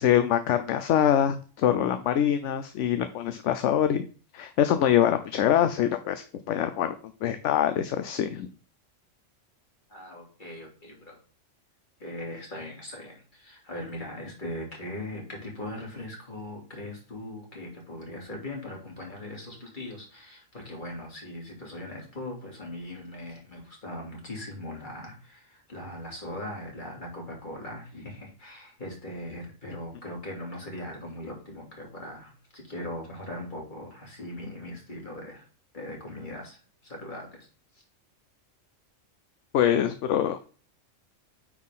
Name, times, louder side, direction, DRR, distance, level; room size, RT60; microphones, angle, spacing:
voice 1, 0.0-4.0 4.3-6.9 7.2-8.5 39.5-40.5, left 10 dB, 70° left, 10 dB, 0.9 m, -24 dB
voice 2, 9.9-11.2 12.0-35.5 35.7-36.6 36.8-37.5, left 1 dB, 40° left, -1 dB, 2.9 m, -40 dB
9.3 x 4.2 x 3.6 m, 0.39 s
omnidirectional pair, 1.3 m